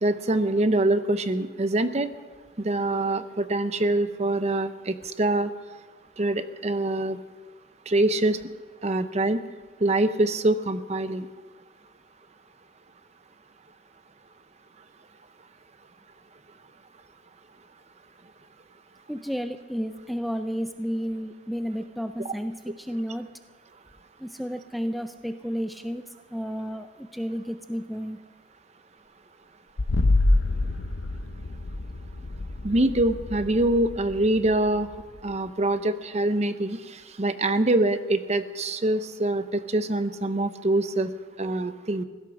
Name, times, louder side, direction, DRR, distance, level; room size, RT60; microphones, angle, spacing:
voice 1, 0.0-2.1 2.6-5.5 6.2-7.2 7.9-8.4 8.8-9.4 9.8-11.3 32.6-34.9 35.2-36.8 37.2-41.1 41.4-42.0, right 2 dB, 35° right, 11 dB, 0.7 m, -24 dB
voice 2, 19.1-23.3 24.2-26.0 26.3-28.2, equal, ahead, 8 dB, 0.4 m, -32 dB
sound 1, 29.8-35.3, left 2 dB, 90° left, 0.8 m, -27 dB
16.0 x 12.0 x 6.3 m, 1.4 s
head